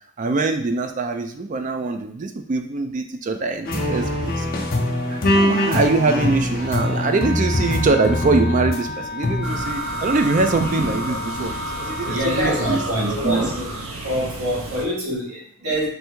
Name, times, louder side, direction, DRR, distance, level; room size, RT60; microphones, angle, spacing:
voice 1, 0.2-4.5 5.1-12.8 13.2-13.5, right 3 dB, 35° right, 6 dB, 0.3 m, -23 dB
sound 1, 3.7-8.8 9.2-9.6, left 1 dB, 40° left, 0.7 m, -22 dB
Wind instrument woodwind instrument, 6.5-12.9, left 2 dB, 5° left, 1.7 m, -33 dB
sound 2, 9.4-14.8, right 2 dB, 65° right, 0.7 m, -30 dB
voice 2, 11.7-13.8 14.0-15.9, equal, 85° right, -4 dB, 1.5 m, -25 dB
3.3 x 2.6 x 4.5 m, 0.62 s
head